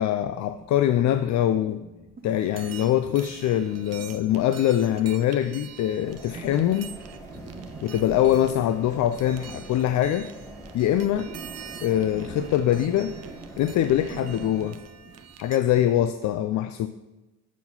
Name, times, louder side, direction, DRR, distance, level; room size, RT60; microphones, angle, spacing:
voice 1, 0.0-1.8 2.2-6.9 7.8-10.3 10.7-11.3 11.8-13.1 13.6-14.8 15.4-16.9, left 11 dB, 70° left, 11 dB, 0.4 m, -23 dB
sound 1, 0.5-16.1, right 4 dB, 30° right, 0.9 m, -46 dB
sound 2, 2.4-15.6, right 9 dB, 55° right, 0.7 m, -46 dB
sound 3, 6.0-14.7, right 1 dB, 10° left, 1.6 m, -44 dB
8.2 x 4.7 x 5.5 m, 1.0 s
cardioid pair, 90°, 30 cm